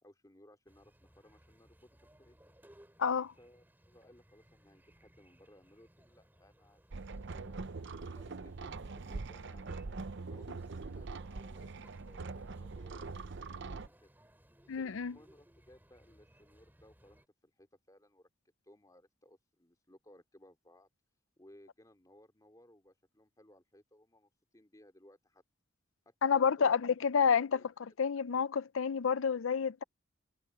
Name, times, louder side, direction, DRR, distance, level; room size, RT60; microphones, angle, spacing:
voice 1, 0.0-2.5 3.4-14.1 14.7-25.4 26.1-26.7 27.4-27.7 29.3-29.5, left 1 dB, 15° left, 3.7 m, -62 dB
sound 1, 0.7-17.3, equal, 10° right, 3.9 m, -64 dB
voice 2, 3.0-3.3 14.7-15.2 26.2-27.6 28.0-29.8, left 6 dB, 65° left, 0.5 m, -29 dB
sound 2, 6.9-13.9, right 3 dB, 55° right, 0.7 m, -43 dB
head